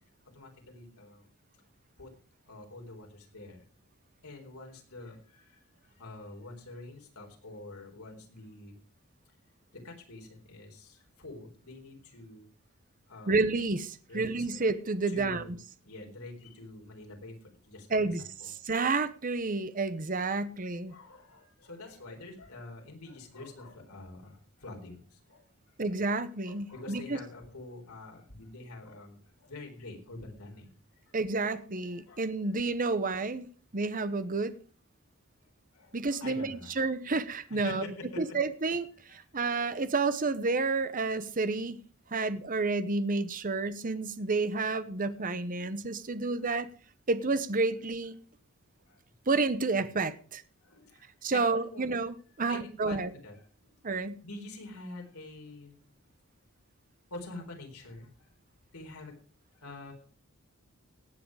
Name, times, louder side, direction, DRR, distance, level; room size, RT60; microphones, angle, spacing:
voice 1, 0.3-1.3 2.0-2.1 2.5-3.6 4.2-8.8 9.7-12.5 13.1-13.4 14.1-14.6 15.1-15.6 15.8-18.9 20.9-25.4 26.4-30.8 31.1-31.2 31.8-32.5 35.7-36.8 37.5-38.4 39.1-39.2 45.2-45.3 46.4-46.6 48.8-49.0 50.6-51.9 52.5-53.7 54.2-55.9 57.1-58.3 58.7-59.1 59.5-59.9, left 2 dB, 85° left, 4.2 m, -46 dB
voice 2, 13.3-15.4 17.9-18.2 18.7-21.0 25.8-27.2 31.1-33.5 33.7-34.6 35.9-37.8 38.2-41.8 42.1-46.7 47.1-48.1 49.3-50.4 51.2-53.1 53.8-54.2, right 3 dB, 40° right, 0.9 m, -30 dB
17.5 x 7.8 x 4.8 m
head